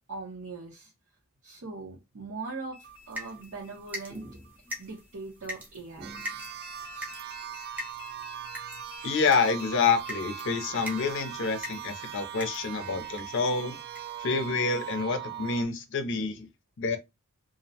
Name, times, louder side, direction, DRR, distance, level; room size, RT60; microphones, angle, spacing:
voice 1, 0.1-0.9 1.4-4.2 4.8-6.2, right 3 dB, 75° right, 0.8 m, -40 dB
sound 1, 2.7-5.2 6.1-14.4, right 3 dB, 25° left, 0.7 m, -47 dB
sound 2, 2.8-13.5 13.9-14.2 14.7-14.8 15.1-15.2, equal, 10° right, 0.7 m, -44 dB
sound 3, 6.0-15.6, right 11 dB, 50° right, 0.3 m, -41 dB
voice 2, 9.0-13.8 14.2-16.5 16.8-17.0, left 4 dB, 60° left, 0.5 m, -28 dB
2.5 x 2.0 x 2.7 m
head